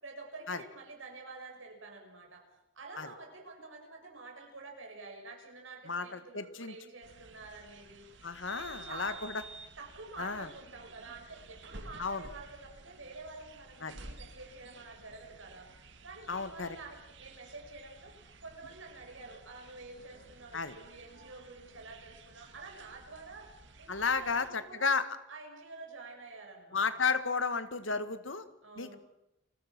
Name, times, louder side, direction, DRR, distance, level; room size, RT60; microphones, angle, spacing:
voice 1, 0.0-2.4 2.8-8.1 8.6-9.2 9.8-15.7 16.0-18.1 18.4-23.5 23.8-25.0 25.3-27.0 27.7-28.2 28.6-29.0, right 3 dB, 85° right, 2 dB, 7.0 m, -49 dB
voice 2, 5.9-6.7 8.2-9.4 10.2-10.5 12.0-12.3 13.8-13.9 16.3-16.8 20.5-20.7 23.9-25.1 26.7-28.4 28.8-28.9, left 4 dB, 75° left, 11 dB, 1.8 m, -33 dB
sound 1, 7.0-24.5, right 3 dB, 65° right, 2.3 m, -53 dB
30.0 x 21.0 x 6.2 m, 0.90 s
head